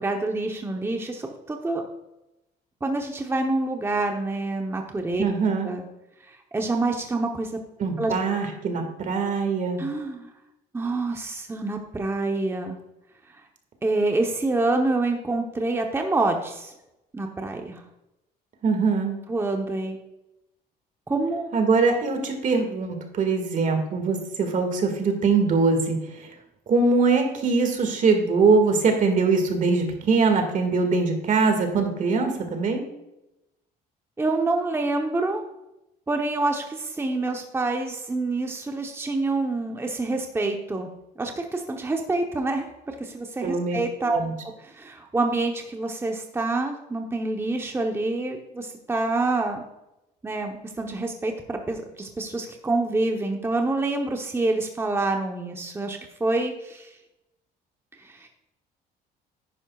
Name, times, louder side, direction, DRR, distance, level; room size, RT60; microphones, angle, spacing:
voice 1, 0.0-1.8 2.8-5.2 5.6-5.8 6.3-7.5 8.0-8.1 9.8-10.3 10.7-12.8 13.8-16.7 17.1-17.8 19.3-20.0 21.1-21.5 34.2-35.4 36.1-40.9 41.2-49.6 50.2-56.9 58.0-58.3, right 2 dB, 15° right, 3 dB, 0.9 m, -27 dB
voice 2, 5.2-5.7 7.8-9.8 18.6-19.2 21.5-26.3 26.7-32.8 43.4-43.8 44.0-44.3, right 4 dB, 50° right, 5 dB, 2.0 m, -22 dB
10.5 x 9.8 x 2.4 m, 0.92 s
cardioid pair, 110°, 17 cm